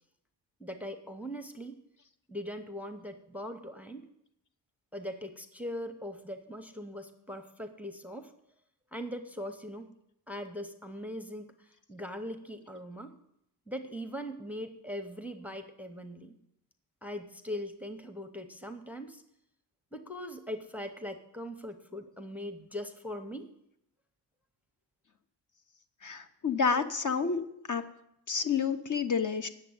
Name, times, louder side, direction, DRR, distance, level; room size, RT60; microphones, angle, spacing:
voice 1, 0.6-1.8 2.3-4.0 4.9-8.3 8.9-9.9 10.3-11.5 11.9-13.1 13.7-16.3 17.0-19.2 19.9-23.5, equal, 5° right, 8 dB, 0.7 m, -40 dB
voice 2, 26.0-27.8 28.3-29.5, left 5 dB, 45° left, 9 dB, 0.9 m, -29 dB
9.3 x 6.9 x 8.6 m, 0.77 s
wide cardioid pair, 135°, 43 cm